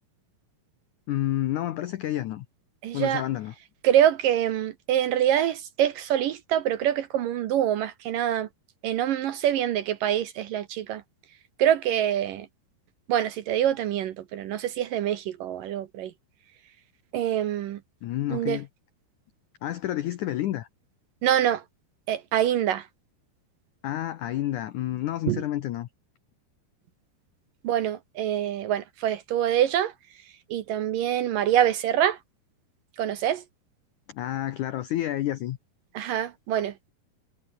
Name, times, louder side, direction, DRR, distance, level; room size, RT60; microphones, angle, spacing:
voice 1, 1.1-2.5 2.9-3.5 18.0-18.7 19.6-20.7 23.8-25.9 34.1-35.6, left 13 dB, 90° left, 1.7 m, -29 dB
voice 2, 2.8-3.3 3.8-8.5 8.8-11.0 11.6-12.5 13.1-16.1 17.1-17.8 18.3-18.6 21.2-21.6 22.1-22.9 25.3-25.4 27.6-29.9 30.2-32.2 33.0-33.4 35.9-36.9, right 11 dB, 70° right, 2.3 m, -25 dB
omnidirectional pair, 4.9 m